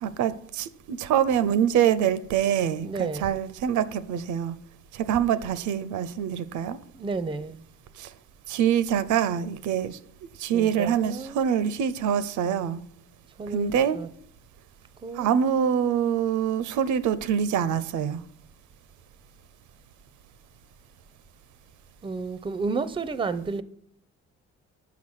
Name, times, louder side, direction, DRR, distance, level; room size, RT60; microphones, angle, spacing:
voice 1, 0.0-4.6 4.9-6.8 8.0-8.1 8.5-10.0 10.4-12.8 13.5-14.0 15.1-18.2, right 9 dB, 75° right, 0.5 m, -25 dB
voice 2, 2.8-3.3 6.9-7.6 10.5-11.4 13.4-14.1 15.0-15.3 22.0-23.6, right 4 dB, 15° right, 0.5 m, -31 dB
5.8 x 5.8 x 6.2 m
cardioid pair, 90°, 30 cm